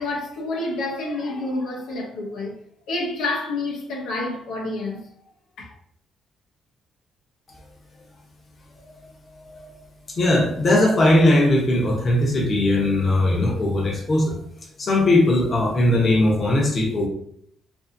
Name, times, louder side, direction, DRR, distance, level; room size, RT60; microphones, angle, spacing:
voice 1, 0.0-2.6 2.9-5.0 5.6-5.7, left 2 dB, 90° left, 0.7 m, -28 dB
voice 2, 9.4-9.8 10.2-14.4 14.8-17.1, left 1 dB, 30° left, 0.7 m, -19 dB
2.7 x 2.6 x 2.5 m
cardioid pair, 155°, 0 cm